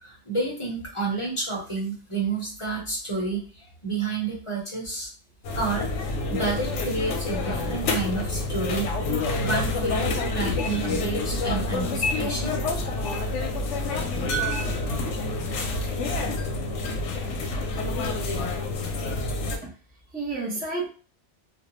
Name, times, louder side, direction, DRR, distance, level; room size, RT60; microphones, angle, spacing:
voice 1, 0.0-5.1 5.6-8.9 9.4-12.5, right 3 dB, 30° left, -3 dB, 0.7 m, -30 dB
Dutch supermarket, 5.4-19.6, left 2 dB, 85° left, 0.9 m, -28 dB
voice 2, 17.0-17.6 18.3-18.4 19.6-19.7 20.1-20.9, right 3 dB, 10° right, -2 dB, 0.5 m, -33 dB
2.4 x 2.1 x 2.9 m, 0.39 s
omnidirectional pair, 1.2 m